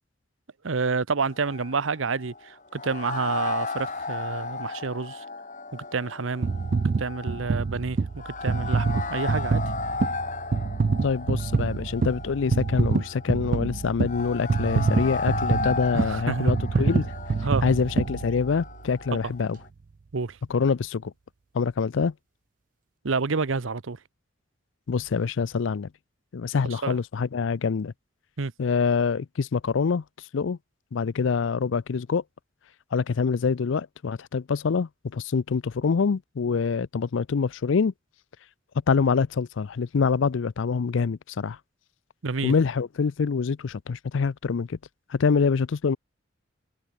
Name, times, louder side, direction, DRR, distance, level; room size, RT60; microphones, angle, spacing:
voice 1, 0.6-5.2 5.7-6.5 7.0-8.0 8.2-9.6 15.9-16.6 17.4-17.7 20.1-20.4 23.0-24.0 26.8-27.0 28.4-28.5 42.2-42.5, right 4 dB, 85° right, 0.8 m, -29 dB
sound 1, 1.3-19.7, left 4 dB, 40° left, 2.1 m, -35 dB
sound 2, 6.4-18.8 19.4-19.5, right 4 dB, 40° right, 0.3 m, -26 dB
voice 2, 11.0-17.1 17.6-19.6 20.5-21.1 21.5-22.1 24.9-25.9 26.3-27.9 28.6-30.0 30.3-30.6 30.9-32.2 32.9-37.9 38.9-41.6 42.4-44.8 45.1-46.0, left 5 dB, 75° left, 0.5 m, -25 dB
head